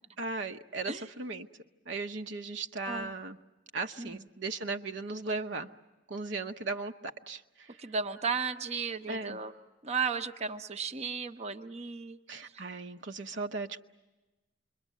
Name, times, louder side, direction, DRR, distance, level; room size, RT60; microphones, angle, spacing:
voice 1, 0.2-1.5 1.9-3.4 3.7-5.7 6.1-7.8 9.1-9.4 12.3-13.8, right 3 dB, 70° right, 6 dB, 0.9 m, -37 dB
voice 2, 7.8-9.5 9.8-12.2 12.5-12.6, right 5 dB, 35° right, 7 dB, 0.8 m, -34 dB
28.0 x 23.0 x 8.3 m, 1.1 s
head